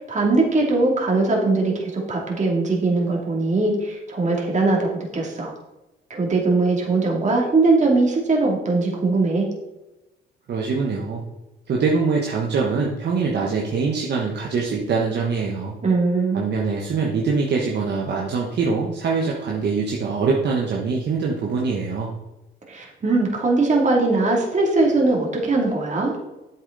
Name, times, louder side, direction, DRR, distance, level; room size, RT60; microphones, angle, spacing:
voice 1, 0.1-5.5 6.1-9.5 15.8-16.4 22.7-26.1, right 3 dB, 35° right, -1 dB, 2.7 m, -20 dB
voice 2, 10.5-11.2 11.7-15.7 16.3-22.1, right 4 dB, 60° right, -1 dB, 1.3 m, -23 dB
8.2 x 7.3 x 4.0 m, 1.0 s
cardioid pair, 90°, 20 cm